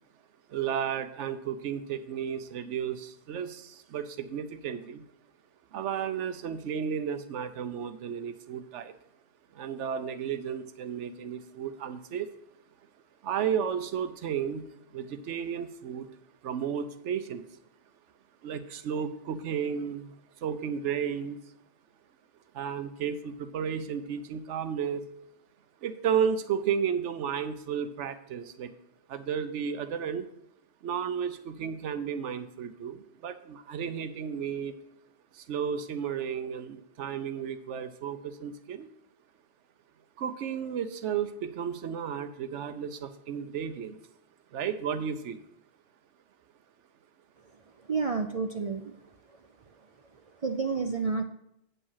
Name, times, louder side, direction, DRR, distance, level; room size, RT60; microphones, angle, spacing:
voice 1, 0.5-5.0 5.7-8.9 9.6-12.3 13.2-16.1 16.4-17.4 18.4-20.1 20.4-21.4 22.5-25.0 25.8-28.7 29.1-30.2 30.8-34.7 35.5-38.9 40.2-44.0 44.5-45.4, right 7 dB, 75° right, 11 dB, 1.0 m, -33 dB
voice 2, 47.9-48.9 50.4-51.2, right 4 dB, 50° right, 6 dB, 0.4 m, -29 dB
8.5 x 5.5 x 5.6 m, 0.78 s
omnidirectional pair, 1.2 m